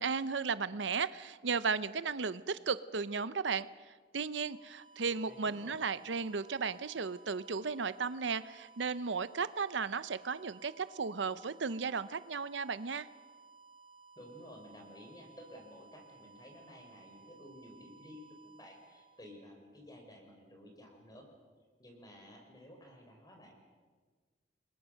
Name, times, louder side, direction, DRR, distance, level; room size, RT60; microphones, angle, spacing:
voice 1, 0.0-3.7 4.1-13.1, right 5 dB, 80° right, 15 dB, 0.7 m, -35 dB
sound 1, 4.1-19.9, right 4 dB, 30° right, 3.6 m, -59 dB
voice 2, 5.2-5.8 14.1-21.3 21.8-23.5, left 1 dB, 20° left, 3 dB, 4.9 m, -53 dB
30.0 x 22.0 x 6.5 m, 1.5 s
head